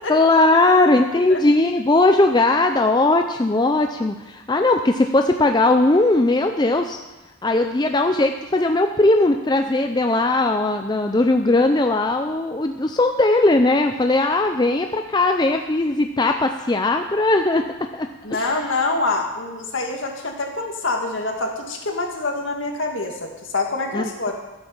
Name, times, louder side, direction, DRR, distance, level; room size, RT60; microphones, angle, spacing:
voice 1, 0.1-7.0 7.4-18.5 23.9-24.0, left 2 dB, 20° left, 5 dB, 0.5 m, -19 dB
voice 2, 18.2-24.3, left 3 dB, 60° left, 2 dB, 2.1 m, -25 dB
13.0 x 8.4 x 7.2 m, 1.1 s
head